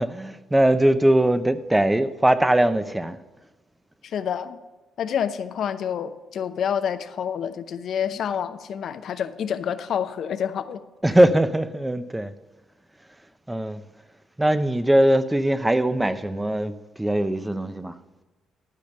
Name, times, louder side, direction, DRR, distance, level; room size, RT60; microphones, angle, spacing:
voice 1, 0.0-3.2 11.0-12.3 13.5-13.8 14.4-17.9, right 1 dB, 10° right, 0.6 m, -21 dB
voice 2, 4.0-4.6 5.0-10.8, left 8 dB, 65° left, 0.7 m, -28 dB
12.0 x 5.0 x 6.7 m
cardioid pair, 90°, 0 cm